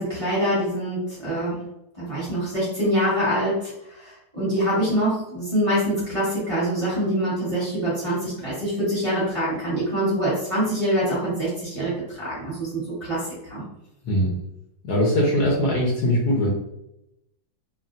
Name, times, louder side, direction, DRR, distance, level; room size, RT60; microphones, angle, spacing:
voice 1, 0.0-1.6 1.9-13.6, equal, 20° right, -9 dB, 1.1 m, -25 dB
voice 2, 14.8-16.5, equal, 65° left, -3 dB, 1.1 m, -21 dB
3.3 x 2.3 x 2.5 m, 0.85 s
omnidirectional pair, 2.0 m